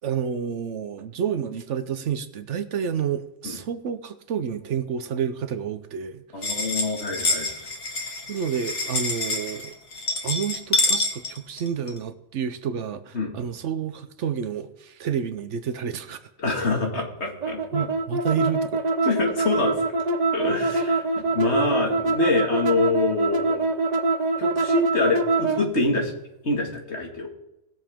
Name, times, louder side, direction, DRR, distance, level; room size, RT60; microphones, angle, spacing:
voice 1, 0.0-6.5 8.3-9.7 10.2-16.3 17.7-18.8, right 8 dB, 65° right, 1.0 m, -29 dB
voice 2, 6.3-7.5 13.1-13.3 16.4-17.9 19.0-19.8 20.3-23.7 24.4-26.1 26.4-27.3, left 3 dB, 55° left, 2.3 m, -26 dB
sound 1, 6.4-12.0, left 2 dB, 80° left, 2.0 m, -27 dB
sound 2, 17.4-25.7, right 3 dB, 40° right, 0.7 m, -24 dB
19.5 x 7.1 x 3.6 m
omnidirectional pair, 1.4 m